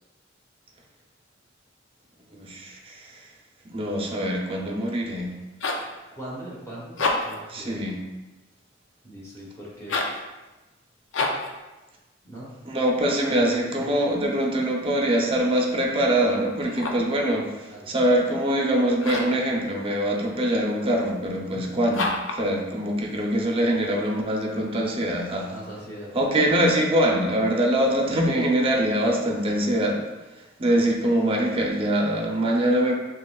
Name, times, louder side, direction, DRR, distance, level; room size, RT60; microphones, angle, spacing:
voice 1, 2.3-3.3 3.7-5.3 7.5-8.0 12.7-25.5 26.1-30.0 30.4-32.9, right 1 dB, 30° right, 0 dB, 0.7 m, -23 dB
sound 1, 5.3-5.9 6.8-7.5 9.8-10.2 11.1-11.5 16.6-17.1 19.0-19.4 21.9-22.4, left 3 dB, 85° left, 0.6 m, -28 dB
voice 2, 6.2-7.9 9.0-9.9 12.2-12.5 13.3-13.5 17.7-17.9 21.5-21.8 25.5-26.1, right 1 dB, 15° left, -7 dB, 1.1 m, -40 dB
6.6 x 3.0 x 2.4 m, 1.1 s
head